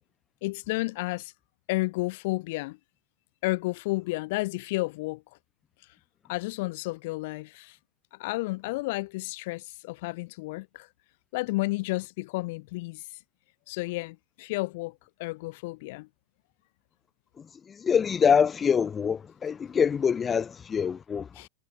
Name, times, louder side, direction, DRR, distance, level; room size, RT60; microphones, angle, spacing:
voice 1, 0.4-1.3 1.7-2.8 3.4-5.2 6.3-7.8 8.2-10.9 11.3-13.0 13.7-16.1 21.3-21.5, left 22 dB, 50° left, 1.3 m, -31 dB
voice 2, 17.7-21.3, left 7 dB, 20° left, 1.5 m, -25 dB
figure-of-eight pair, 90°, 0 cm